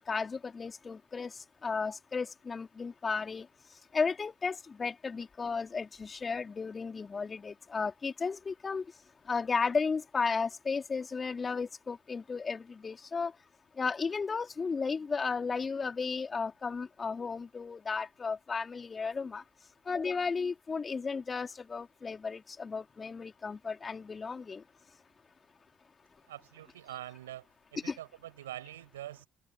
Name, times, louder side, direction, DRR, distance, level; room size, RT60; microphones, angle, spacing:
voice 1, 0.0-3.5 3.9-8.9 9.3-13.3 13.8-19.4 19.9-24.6 27.9-28.0, left 5 dB, 35° left, 3.6 m, -34 dB
voice 2, 26.3-27.5 27.7-29.3, right 13 dB, 85° right, 6.1 m, -44 dB
hypercardioid pair, 50°, 0 cm